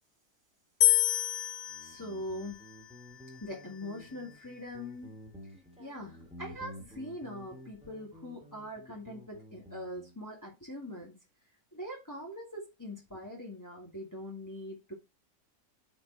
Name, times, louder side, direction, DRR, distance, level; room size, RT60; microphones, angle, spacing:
sound 1, 0.8-4.0, left 13 dB, 90° left, 1.4 m, -30 dB
Guitar, 1.7-10.2, left 1 dB, 5° right, 2.3 m, -51 dB
voice 1, 1.8-2.6 3.4-5.1 5.8-11.2 11.7-14.9, left 1 dB, 10° left, 2.5 m, -42 dB
9.4 x 5.3 x 4.2 m
omnidirectional pair, 1.6 m